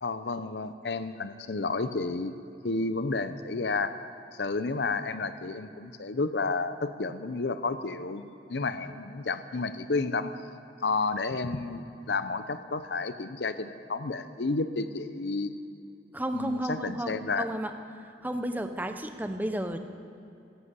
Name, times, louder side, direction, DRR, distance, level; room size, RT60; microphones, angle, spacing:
voice 1, 0.0-2.4 2.6-4.0 4.4-10.3 10.8-15.5 16.3-17.5, left 3 dB, 70° left, 12 dB, 0.7 m, -31 dB
voice 2, 16.1-17.7 18.2-19.8, right 1 dB, 10° right, 7 dB, 0.8 m, -32 dB
15.5 x 11.0 x 8.2 m, 2.8 s
head